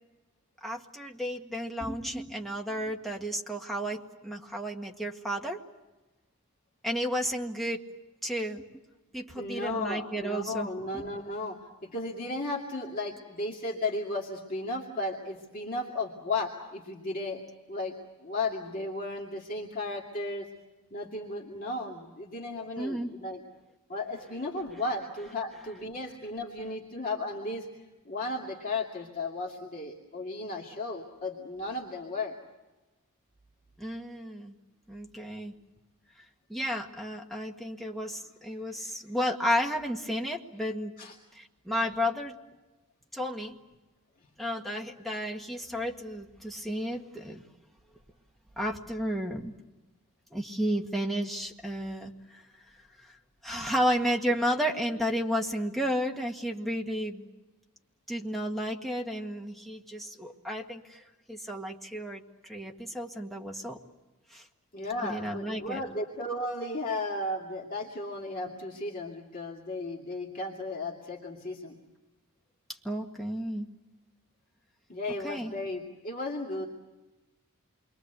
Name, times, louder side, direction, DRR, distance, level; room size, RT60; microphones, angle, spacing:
voice 1, 0.6-5.6 6.8-7.8 8.2-8.8 9.1-11.1 22.8-23.1 33.8-34.5 34.9-35.5 36.5-40.9 41.3-42.4 43.1-43.6 44.4-47.4 48.6-49.5 50.3-52.4 53.4-57.3 58.1-61.0 61.3-63.8 64.3-64.4 65.0-65.8 72.8-73.7 75.2-75.5, equal, ahead, 1 dB, 1.8 m, -32 dB
voice 2, 9.4-17.4 17.7-17.9 18.2-20.5 20.9-23.4 23.9-27.7 28.1-32.3 41.0-41.1 64.7-71.8 74.9-76.7, left 2 dB, 40° left, -2 dB, 2.4 m, -35 dB
28.0 x 23.5 x 8.1 m, 1.1 s
head